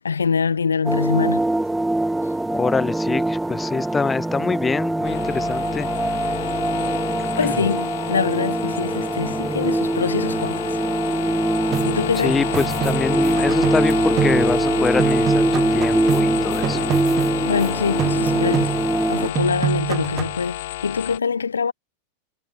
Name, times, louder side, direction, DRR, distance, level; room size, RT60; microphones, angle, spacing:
voice 1, 0.0-1.4 7.4-10.8 11.9-12.4 17.4-18.7 19.1-21.7, left 6 dB, 75° left, 0.5 m, -24 dB
sound 1, 0.8-19.3, right 1 dB, 5° right, 0.5 m, -23 dB
voice 2, 2.5-5.9 7.2-7.6 12.2-16.8, left 4 dB, 15° left, 0.9 m, -25 dB
sound 2, 5.0-21.2, left 16 dB, 55° left, 1.4 m, -30 dB
sound 3, 11.7-14.7 15.0-17.7 18.0-19.1 19.3-20.4, right 11 dB, 30° right, 1.9 m, -27 dB
figure-of-eight pair, 90°, 0 cm